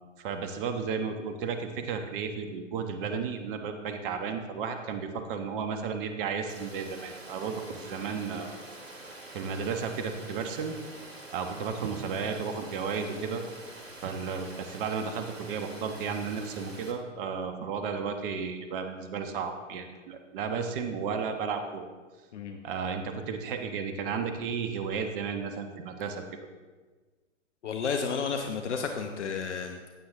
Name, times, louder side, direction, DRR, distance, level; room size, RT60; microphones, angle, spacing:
voice 1, 0.2-8.5 8.9-9.0 9.3-10.7 11.3-13.4 14.0-21.8 22.6-26.2, right 6 dB, 45° right, 6 dB, 1.3 m, -33 dB
Water, 6.5-16.9, right 2 dB, 90° right, 2.3 m, -46 dB
voice 2, 27.6-29.9, left 5 dB, 65° left, 4 dB, 1.1 m, -32 dB
16.0 x 9.6 x 3.7 m, 1.4 s
figure-of-eight pair, 115°, 38 cm